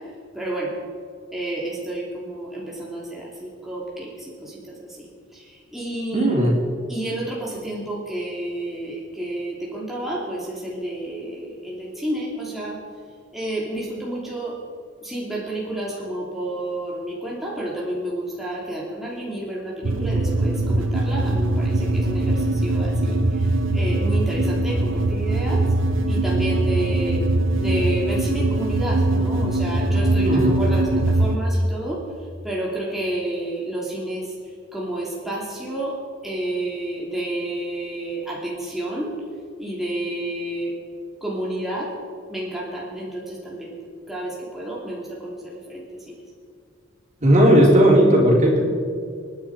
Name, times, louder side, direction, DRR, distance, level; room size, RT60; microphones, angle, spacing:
voice 1, 0.3-0.7 1.3-3.3 3.6-4.1 4.4-4.5 5.7-6.4 6.9-12.8 13.3-14.5 15.0-23.2 23.7-25.7 26.1-27.2 27.5-32.0 32.4-34.2 34.7-35.9 36.2-39.1 39.6-40.7 41.2-41.9 42.3-43.8 44.1-45.3 45.7-46.1, right 1 dB, ahead, -5 dB, 2.9 m, -30 dB
voice 2, 6.1-6.5 30.2-30.5 47.2-48.6, right 1 dB, 40° right, -2 dB, 4.1 m, -15 dB
sound 1, 19.8-31.4, right 2 dB, 70° right, 1.0 m, -21 dB
28.0 x 10.5 x 4.9 m, 2.3 s
head